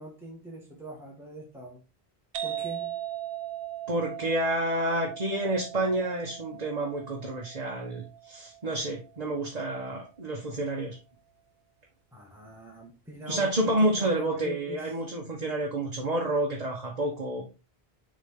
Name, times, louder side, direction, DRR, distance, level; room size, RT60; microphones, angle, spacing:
voice 1, 0.0-1.8 2.4-3.0 12.1-14.9, right 1 dB, ahead, 1.6 m, -43 dB
sound 1, 2.3-9.8, right 12 dB, 65° right, 1.0 m, -39 dB
voice 2, 3.9-11.0 13.3-17.4, right 1 dB, 40° right, 1.3 m, -29 dB
7.2 x 4.0 x 3.6 m
omnidirectional pair, 1.1 m